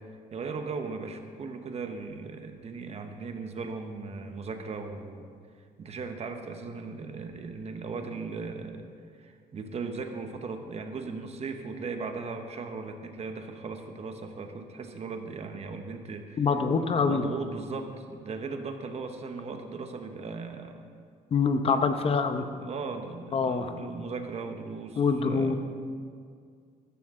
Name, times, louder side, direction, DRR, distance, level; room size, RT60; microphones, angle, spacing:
voice 1, 0.3-5.3 5.8-8.8 9.2-16.5 16.8-20.8 21.7-22.0 22.3-25.6, right 4 dB, 40° right, 6 dB, 1.0 m, -37 dB
voice 2, 16.4-17.3 21.3-22.4 23.3-23.7 25.0-25.5, left 5 dB, 35° left, 8 dB, 0.8 m, -25 dB
15.0 x 13.0 x 3.7 m, 2.1 s
cardioid pair, 145°, 16 cm